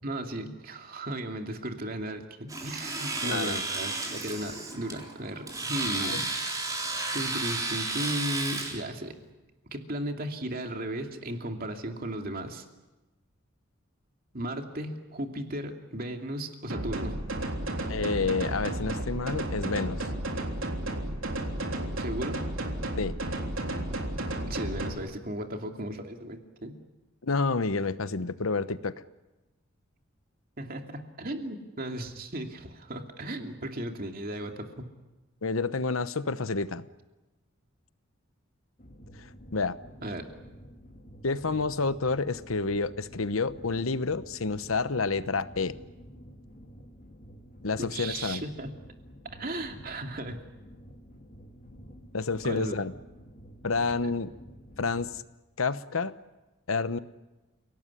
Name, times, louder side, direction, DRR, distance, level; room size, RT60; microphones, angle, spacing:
voice 1, 0.0-6.6 7.1-9.2 9.7-12.6 14.3-17.1 22.0-22.5 24.5-26.7 30.6-34.9 40.0-40.2 47.8-48.7 49.2-50.4 52.4-52.7, right 1 dB, 45° right, 4 dB, 2.7 m, -36 dB
Domestic sounds home sounds, 2.5-8.8, right 2 dB, 15° right, 3.9 m, -33 dB
voice 2, 3.2-3.6 6.0-6.2 17.9-20.1 23.0-23.2 27.2-28.9 35.4-36.8 39.2-39.8 41.2-45.8 47.6-48.4 52.1-52.9 53.6-54.3 54.8-55.2 55.6-56.1 56.7-57.0, left 4 dB, 80° left, 14 dB, 1.0 m, -29 dB
sound 1, 16.7-24.9, right 1 dB, 75° right, 3.5 m, -32 dB
sound 2, 38.8-55.2, equal, 40° left, 2.7 m, -50 dB
29.5 x 18.0 x 9.9 m, 1.1 s
head